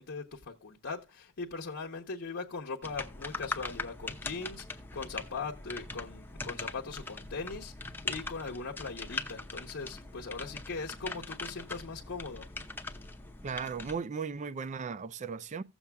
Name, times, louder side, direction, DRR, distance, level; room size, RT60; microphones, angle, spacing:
voice 1, 0.0-12.5, left 4 dB, 55° left, 0.9 m, -40 dB
sound 1, 2.8-14.0, left 2 dB, 10° left, 0.7 m, -41 dB
voice 2, 13.4-15.6, right 5 dB, 35° right, 0.4 m, -36 dB
15.5 x 7.1 x 2.2 m
head